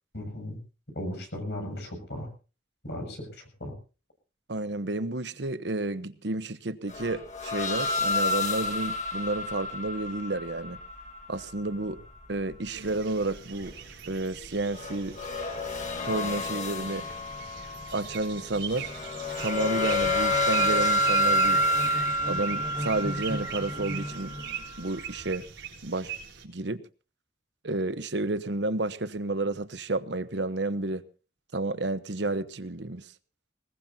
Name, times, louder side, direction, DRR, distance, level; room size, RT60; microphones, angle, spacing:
voice 1, 0.1-0.6 0.9-2.3 2.8-3.7, left 1 dB, 65° left, 7.0 m, -36 dB
voice 2, 4.5-10.8 11.3-12.0 12.3-13.7 14.1-15.2 16.0-17.0 17.9-18.9 19.4-21.6 22.3-24.3 24.8-25.4 25.8-26.1 26.4-26.8 27.6-31.0 31.5-33.1, right 2 dB, 70° right, 1.0 m, -31 dB
sound 1, 6.9-12.2 14.7-18.2 18.8-24.8, left 1 dB, 40° left, 1.6 m, -29 dB
sound 2, 12.7-26.5, right 8 dB, 90° right, 4.0 m, -41 dB
sound 3, 14.8-14.9 15.1-24.8, equal, 30° right, 2.8 m, -41 dB
21.0 x 19.5 x 2.8 m
head